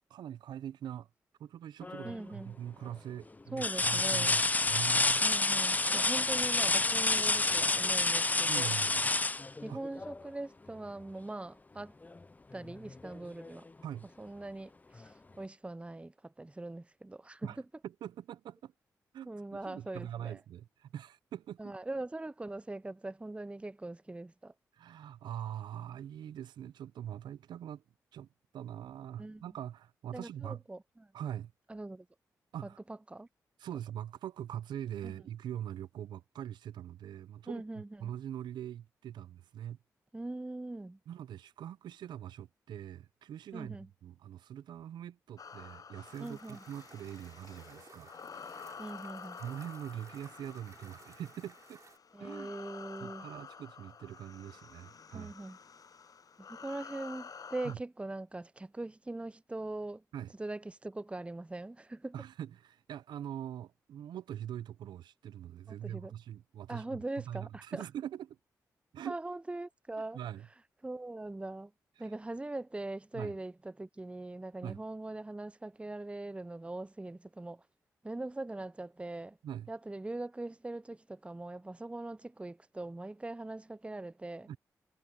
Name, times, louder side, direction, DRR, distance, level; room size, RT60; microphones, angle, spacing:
voice 1, 0.1-1.1 1.4-5.2 8.5-9.1 9.7-9.8 13.8-14.1 17.4-17.6 17.8-18.7 19.1-21.7 24.7-27.8 28.1-28.3 28.5-30.6 31.1-31.5 32.5-32.8 33.6-39.8 41.1-48.5 49.4-51.8 52.2-52.5 53.0-55.3 57.6-57.8 60.1-60.3 62.1-68.4 68.9-69.2 70.1-70.5 72.0-72.1 73.1-73.3 74.6-74.8 79.4-79.7 84.5-84.6, right 10 dB, 80° right, 0.7 m, -43 dB
sound 1, 1.8-2.3 2.9-3.0 3.6-10.3 12.0-12.2 12.6-13.7 15.0-15.1, left 3 dB, 20° left, 0.4 m, -29 dB
voice 2, 2.0-2.6 3.5-4.4 5.2-8.7 9.6-11.9 12.5-13.7 14.2-17.5 19.3-20.4 21.6-24.5 29.2-29.4 30.1-31.1 31.7-32.1 33.1-33.3 35.0-35.1 37.5-38.1 40.1-41.0 43.5-43.9 46.2-46.6 48.8-49.4 52.1-53.3 55.1-55.6 56.4-60.0 60.4-62.1 65.7-66.1 66.7-67.8 69.1-70.2 70.8-71.7 72.0-77.6 78.0-79.4 79.7-84.5, right 2 dB, 15° right, 0.6 m, -41 dB
sound 2, 45.4-57.7, left 6 dB, 55° left, 0.8 m, -50 dB
sound 3, 46.0-52.0, right 4 dB, 45° right, 3.4 m, -58 dB
supercardioid pair, 40°, 8 cm